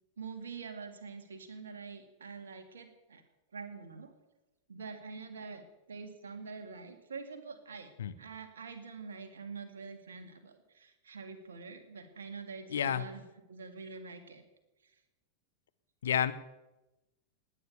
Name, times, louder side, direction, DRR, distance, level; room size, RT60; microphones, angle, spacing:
voice 1, 0.2-3.2 3.5-4.1 4.7-5.6 5.9-7.9 8.2-14.4, right 4 dB, 70° right, 7 dB, 2.0 m, -45 dB
voice 2, 12.7-13.0 16.0-16.3, left 9 dB, 65° left, 13 dB, 0.8 m, -29 dB
18.5 x 9.5 x 6.8 m, 1.0 s
figure-of-eight pair, 90°, 0 cm